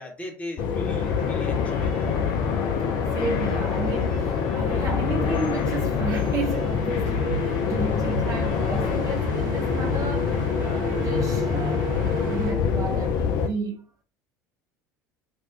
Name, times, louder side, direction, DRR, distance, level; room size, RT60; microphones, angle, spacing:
voice 1, 0.0-2.1, left 1 dB, 15° left, 0.9 m, -38 dB
sound 1, 0.6-13.5, left 6 dB, 45° left, 0.4 m, -25 dB
sound 2, 0.9-12.5, right 2 dB, 50° right, 1.0 m, -36 dB
voice 2, 2.8-13.9, right 4 dB, 35° right, 0.6 m, -33 dB
sound 3, 4.7-8.2, right 3 dB, 90° left, 0.6 m, -41 dB
2.5 x 2.2 x 3.5 m
figure-of-eight pair, 65°, 10 cm